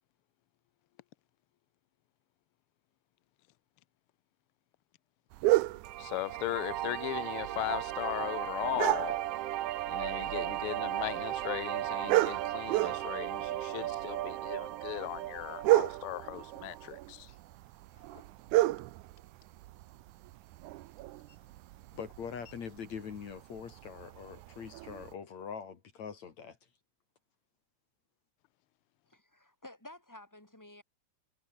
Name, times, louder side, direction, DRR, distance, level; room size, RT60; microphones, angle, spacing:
sound 1, 5.3-25.1, right 17 dB, 90° right, 2.2 m, -34 dB
sound 2, 5.8-16.9, right 14 dB, 65° right, 1.6 m, -36 dB
voice 1, 6.0-9.2 9.9-17.3, left 18 dB, 80° left, 1.2 m, -38 dB
voice 2, 21.9-26.6, left 7 dB, 65° left, 3.7 m, -43 dB
voice 3, 29.0-30.8, left 1 dB, 5° left, 5.2 m, -52 dB
omnidirectional pair, 3.4 m